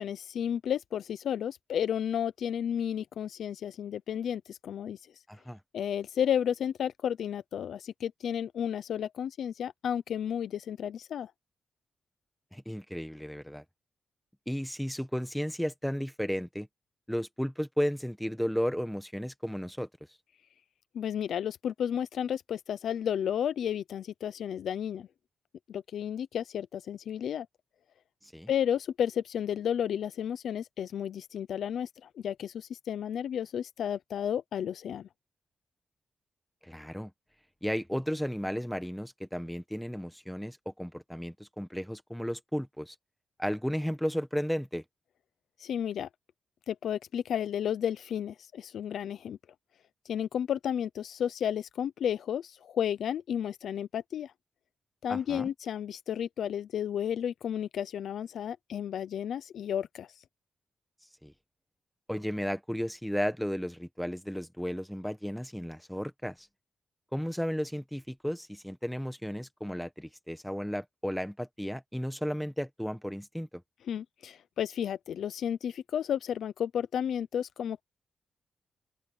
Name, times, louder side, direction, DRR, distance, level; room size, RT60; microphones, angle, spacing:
voice 1, 0.0-5.0 5.7-11.3 20.9-25.1 25.7-27.5 28.5-35.1 45.6-46.1 46.7-49.4 50.1-54.3 55.0-60.1 73.9-77.8, left 9 dB, 80° left, 0.6 m, -32 dB
voice 2, 5.3-5.6 12.5-13.6 14.5-16.7 17.1-19.9 28.3-28.5 36.6-37.1 37.6-42.9 43.4-44.8 55.1-55.5 61.2-61.3 62.1-66.5 67.1-73.5, equal, ahead, 1.2 m, -34 dB
open air
wide cardioid pair, 165°, 0 cm